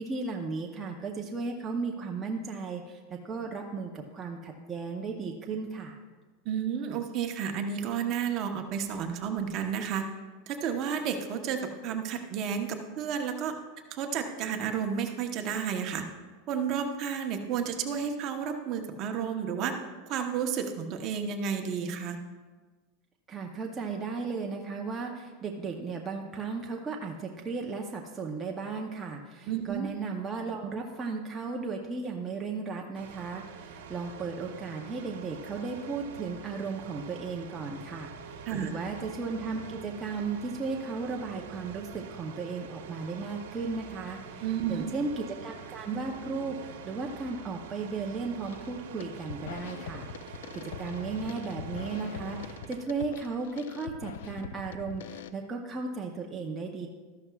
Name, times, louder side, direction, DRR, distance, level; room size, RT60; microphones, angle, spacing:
voice 1, 0.0-6.0 23.3-56.9, right 4 dB, 15° right, 0 dB, 0.7 m, -35 dB
voice 2, 6.4-10.0 10.5-13.5 13.9-16.0 16.5-19.7 20.1-22.2 29.5-29.9 38.5-38.7 44.4-44.8, right 7 dB, 40° right, 5 dB, 1.0 m, -31 dB
sound 1, 32.9-52.9, right 6 dB, 85° right, 1.0 m, -45 dB
sound 2, 48.4-48.7 49.0-55.3, left 7 dB, 90° left, 0.5 m, -42 dB
13.0 x 11.5 x 2.4 m, 1.4 s
supercardioid pair, 150°, 0 cm